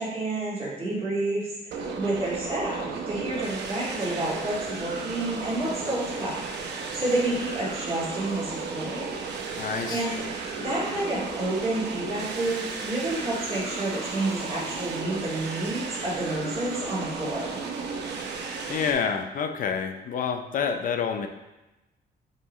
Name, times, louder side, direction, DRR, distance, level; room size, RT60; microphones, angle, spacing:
voice 1, 0.0-9.1 9.9-10.2 10.6-17.6, right 2 dB, 35° right, -7 dB, 2.2 m, -30 dB
sound 1, 1.7-18.9, right 4 dB, 80° right, 0.8 m, -34 dB
voice 2, 9.6-10.1 18.7-21.3, left 6 dB, 50° left, 6 dB, 0.5 m, -28 dB
8.2 x 3.7 x 3.1 m, 1.0 s
cardioid pair, 155°, 17 cm